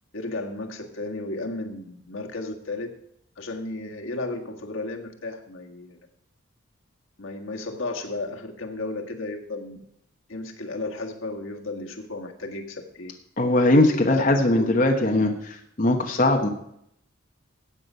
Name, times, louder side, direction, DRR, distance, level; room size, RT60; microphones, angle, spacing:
voice 1, 0.1-2.9 3.4-6.0 7.2-9.8 10.3-13.1 13.8-15.3, left 2 dB, 85° left, 3 dB, 1.7 m, -34 dB
voice 2, 13.4-15.3 15.8-16.5, left 1 dB, 40° left, 2 dB, 1.2 m, -20 dB
14.5 x 8.6 x 5.6 m, 0.73 s
head